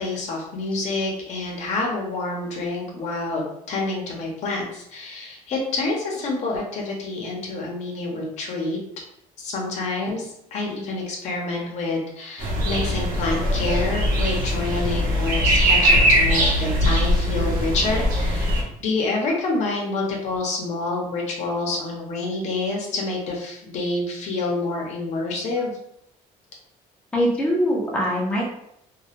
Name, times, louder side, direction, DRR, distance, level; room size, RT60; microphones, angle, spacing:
voice 1, 0.0-8.8 9.4-25.7, left 3 dB, 55° left, -1 dB, 0.6 m, -27 dB
sound 1, 12.4-18.6, equal, 80° right, 0.7 m, -21 dB
voice 2, 27.1-28.5, equal, 10° left, -4 dB, 0.4 m, -22 dB
2.2 x 2.0 x 2.9 m, 0.77 s
cardioid pair, 145°, 14 cm